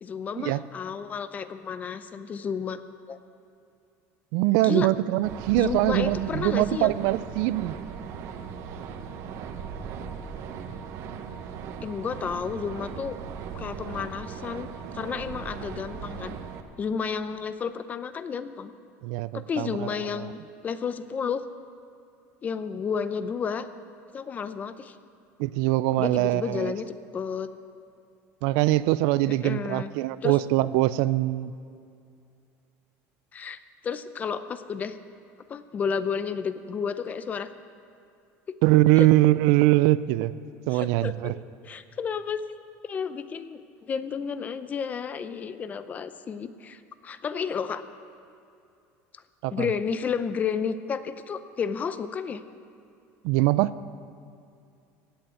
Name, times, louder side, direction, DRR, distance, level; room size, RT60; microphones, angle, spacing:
voice 1, 0.0-2.8 3.1-3.2 4.6-4.9 5.6-6.9 11.8-13.2 13.5-14.7 14.9-16.4 16.8-18.7 19.3-21.4 22.4-23.7 24.1-24.9 26.0-26.9 27.1-27.5 29.4-29.9 30.2-30.4 33.3-35.0 35.5-37.5 39.0-39.1 40.7-41.3 41.6-43.6 43.9-47.8 49.1-49.2 49.5-52.4, left 6 dB, 25° left, 12 dB, 0.6 m, -31 dB
voice 2, 4.3-7.8 19.0-20.3 25.4-26.7 28.4-31.5 38.6-40.3 40.7-41.3 49.4-49.7 53.2-53.7, right 17 dB, 75° right, 17 dB, 0.4 m, -23 dB
sound 1, 5.2-16.6, right 6 dB, 50° right, 1.0 m, -38 dB
17.0 x 6.8 x 9.2 m, 2.5 s
cardioid pair, 150°, 6 cm